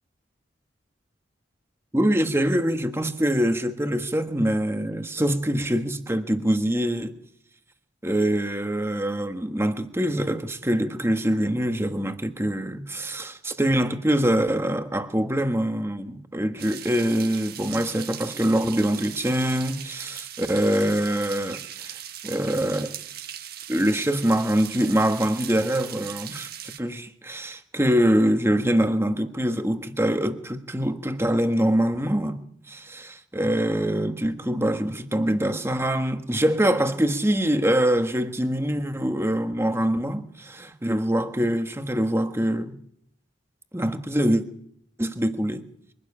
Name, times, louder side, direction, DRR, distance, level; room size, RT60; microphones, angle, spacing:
voice 1, 1.9-7.1 8.0-22.0 22.2-23.0 23.7-42.7 43.7-44.4 45.0-45.6, right 1 dB, 15° right, 1.5 m, -24 dB
sound 1, 16.6-26.8, right 10 dB, 55° right, 1.5 m, -39 dB
23.0 x 12.0 x 9.9 m
head